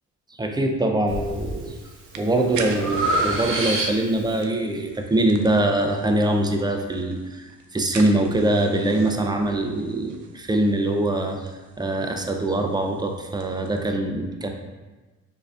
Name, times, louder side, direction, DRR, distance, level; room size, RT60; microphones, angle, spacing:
voice 1, 0.4-1.7 2.2-11.5 11.8-14.5, right 1 dB, 15° right, 3 dB, 0.3 m, -23 dB
Breathing, 1.1-1.6 2.0-4.3, right 1 dB, 45° right, 0.8 m, -26 dB
sound 1, 1.3-13.8, right 5 dB, 75° right, 0.5 m, -43 dB
4.6 x 2.6 x 2.3 m, 1.2 s
cardioid pair, 90°, 30 cm